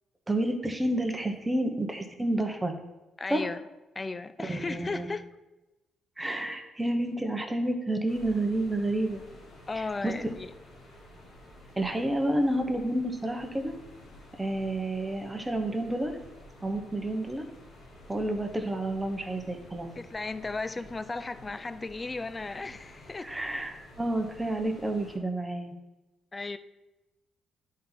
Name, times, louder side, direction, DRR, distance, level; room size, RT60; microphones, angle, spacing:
voice 1, 0.3-2.7 3.3-3.5 4.4-5.1 6.2-9.2 9.7-10.1 11.8-13.7 14.4-16.2 16.6-17.4 18.1-19.9 23.2-25.7, right 1 dB, 15° right, 5 dB, 1.0 m, -30 dB
voice 2, 3.2-3.6 4.0-5.3 9.7-10.5 20.0-23.3 26.3-26.6, left 3 dB, 25° left, 12 dB, 0.4 m, -35 dB
sound 1, 8.1-25.2, left 1 dB, 75° left, 2.4 m, -51 dB
10.0 x 4.2 x 4.0 m, 1.0 s
cardioid pair, 90°, 0 cm